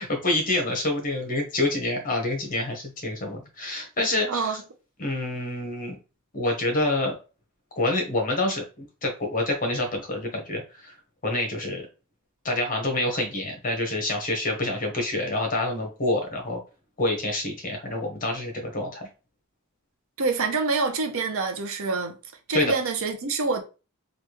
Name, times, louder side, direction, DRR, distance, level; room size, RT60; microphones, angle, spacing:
voice 1, 0.0-4.6 5.0-5.9 6.3-7.2 7.8-11.0 11.2-11.8 12.4-16.6 17.0-19.1 22.5-22.7, left 2 dB, 40° left, 1.1 m, -27 dB
voice 2, 4.3-4.6 20.2-22.2 22.5-23.6, right 4 dB, 65° right, 0.6 m, -26 dB
3.4 x 2.5 x 3.0 m
head